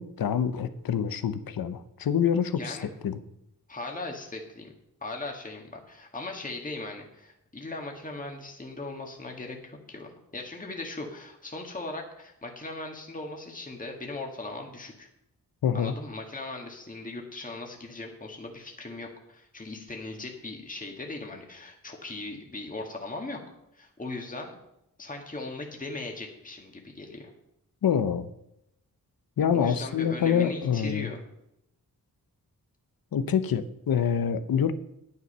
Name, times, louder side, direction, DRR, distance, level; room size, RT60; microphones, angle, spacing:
voice 1, 0.0-3.2 15.6-15.9 27.8-28.3 29.4-31.1 33.1-34.8, left 8 dB, 80° left, 13 dB, 0.9 m, -26 dB
voice 2, 2.6-2.9 3.7-4.7 5.0-15.1 15.7-23.4 23.7-24.5 25.0-27.3 29.5-31.2, left 2 dB, 25° left, 1 dB, 1.8 m, -38 dB
9.8 x 9.5 x 5.5 m, 0.81 s
cardioid pair, 80°, 35 cm